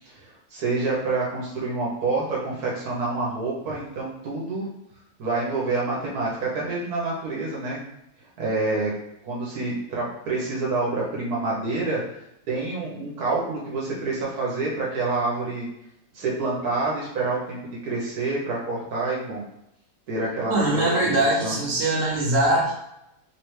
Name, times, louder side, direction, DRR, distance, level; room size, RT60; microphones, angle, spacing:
voice 1, 0.0-4.6 5.2-7.8 8.4-8.9 9.2-12.0 12.5-15.7 16.1-19.4 20.1-21.6, right 3 dB, 80° right, -4 dB, 1.3 m, -27 dB
voice 2, 20.5-22.7, right 1 dB, 65° right, -2 dB, 1.2 m, -22 dB
3.4 x 3.2 x 3.1 m, 0.83 s
omnidirectional pair, 1.6 m